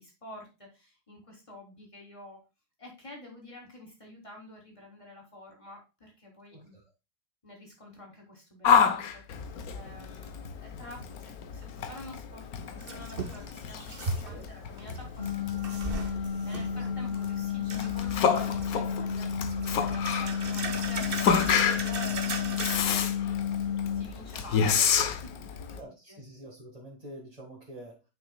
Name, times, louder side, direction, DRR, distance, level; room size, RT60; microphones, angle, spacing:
voice 1, 0.0-2.4 2.8-6.8 7.4-26.2, left 1 dB, 20° left, -1 dB, 3.6 m, -49 dB
voice 2, 6.5-6.8 14.3-14.5 16.9-17.0 22.8-23.0 25.8-28.0, right 1 dB, 25° right, -3 dB, 2.0 m, -47 dB
Yell, 8.6-25.8, left 7 dB, 70° left, 1.3 m, -30 dB
sound 1, 12.8-14.5 14.8-16.9 17.7-19.1 19.5-22.8, right 3 dB, 40° right, 1.3 m, -37 dB
sound 2, 15.2-24.0, left 8 dB, 35° left, 1.3 m, -32 dB
9.9 x 6.0 x 2.3 m, 0.28 s
omnidirectional pair, 1.7 m